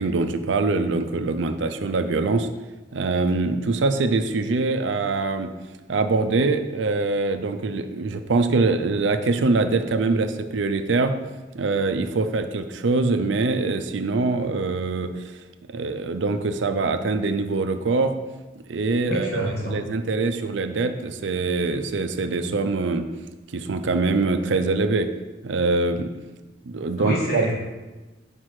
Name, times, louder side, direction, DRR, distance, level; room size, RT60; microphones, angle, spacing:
voice 1, 0.0-2.5 2.9-5.5 5.9-11.1 11.5-15.1 15.7-18.1 18.7-23.1 23.5-25.1 25.4-26.1 26.7-27.4, right 3 dB, 70° right, 8 dB, 0.5 m, -23 dB
voice 2, 19.0-19.8 27.0-27.6, equal, 55° left, -4 dB, 2.4 m, -27 dB
5.9 x 5.3 x 4.8 m, 1.2 s
head